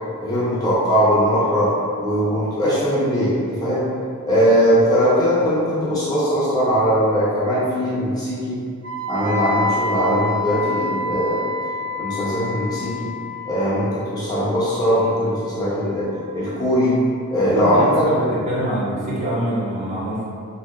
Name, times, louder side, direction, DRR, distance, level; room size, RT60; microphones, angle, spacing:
voice 1, 0.2-3.8 4.2-8.6 9.1-11.5 11.9-13.1 13.4-17.0 17.3-18.1, equal, 15° left, -10 dB, 0.4 m, -20 dB
Wind instrument woodwind instrument, 8.8-16.8, left 2 dB, 75° right, 0.5 m, -29 dB
voice 2, 17.4-20.2, right 1 dB, 35° right, -9 dB, 0.6 m, -25 dB
2.7 x 2.0 x 2.2 m, 2.3 s
head